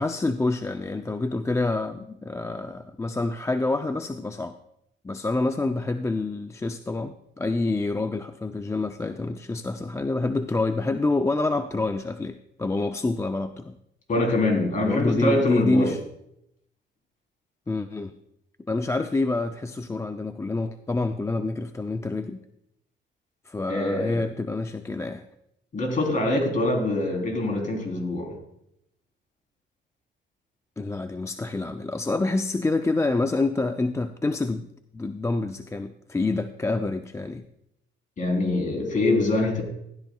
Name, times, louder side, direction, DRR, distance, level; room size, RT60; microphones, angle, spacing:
voice 1, 0.0-4.6 5.0-13.8 14.8-16.0 17.7-18.1 18.7-22.4 23.5-25.2 30.8-34.7 34.9-37.5, left 2 dB, 15° left, 8 dB, 0.4 m, -27 dB
voice 2, 14.1-15.9 23.7-24.3 25.7-28.3 38.2-39.6, left 2 dB, 40° left, 1 dB, 3.5 m, -24 dB
15.5 x 11.5 x 2.3 m, 0.79 s
cardioid pair, 90°, 20 cm